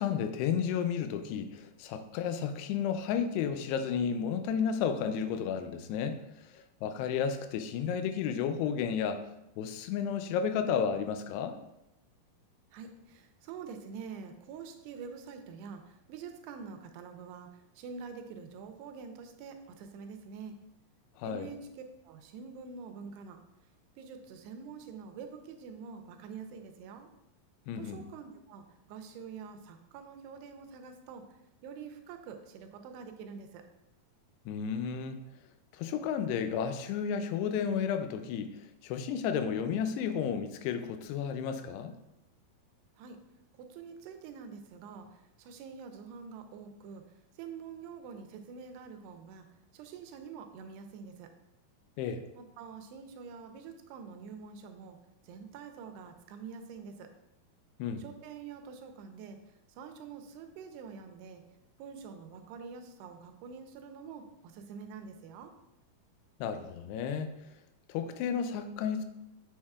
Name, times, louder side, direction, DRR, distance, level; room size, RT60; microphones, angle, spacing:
voice 1, 0.0-6.2 6.5-9.2 9.6-11.6 21.2-21.5 27.7-28.0 34.5-35.2 35.7-38.5 38.8-41.9 52.0-52.2 57.8-58.0 66.4-67.3 67.9-69.0, left 7 dB, 90° left, 8 dB, 2.7 m, -32 dB
voice 2, 12.7-17.5 17.8-20.6 21.2-21.6 22.0-23.4 24.0-27.1 27.8-31.2 31.6-33.6 43.0-43.2 43.6-47.0 47.4-49.5 49.7-51.3 52.3-55.0 55.2-57.1 58.0-59.4 59.8-61.4 61.8-65.5, right 6 dB, 85° right, 6 dB, 2.8 m, -46 dB
7.2 x 6.5 x 2.4 m, 0.88 s
omnidirectional pair, 4.7 m